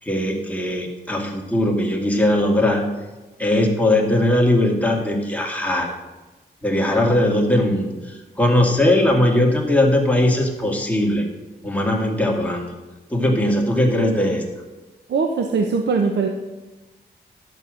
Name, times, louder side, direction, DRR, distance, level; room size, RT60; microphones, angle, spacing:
voice 1, 0.0-2.9 3.4-5.9 6.6-11.2 11.6-12.8 13.1-14.4, left 1 dB, 10° left, 0 dB, 2.1 m, -19 dB
voice 2, 15.1-16.3, right 4 dB, 75° right, 3 dB, 0.9 m, -21 dB
11.5 x 6.9 x 6.3 m, 1.2 s
wide cardioid pair, 100°, 18 cm